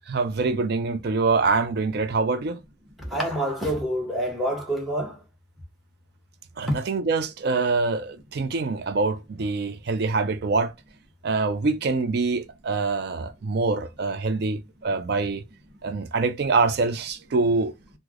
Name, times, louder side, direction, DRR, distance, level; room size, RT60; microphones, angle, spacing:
voice 1, 0.1-2.6 6.6-10.7 11.2-15.4 15.8-17.7, right 4 dB, 55° right, 0.4 m, -25 dB
voice 2, 3.0-5.2, right 1 dB, ahead, 0.9 m, -27 dB
3.2 x 2.0 x 3.6 m
head